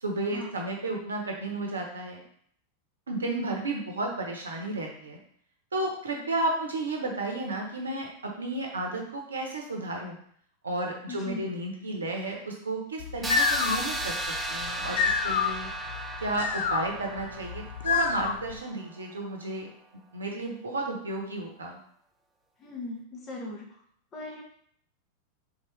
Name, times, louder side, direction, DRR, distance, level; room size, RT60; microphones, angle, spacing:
voice 1, 0.0-2.2 3.1-5.2 5.7-8.1 8.4-10.2 10.6-14.1 14.5-15.7 16.2-19.7 19.9-21.8, right 2 dB, 70° right, 1 dB, 0.8 m, -32 dB
voice 2, 11.1-11.5 22.6-23.8 24.1-24.4, left 2 dB, 30° left, -1 dB, 1.1 m, -39 dB
sound 1, 13.0-18.6, left 6 dB, 60° left, 0.3 m, -29 dB
sound 2, 13.2-19.0, right 2 dB, 5° right, 0.5 m, -35 dB
3.5 x 3.1 x 3.2 m, 0.65 s
figure-of-eight pair, 90°, 0 cm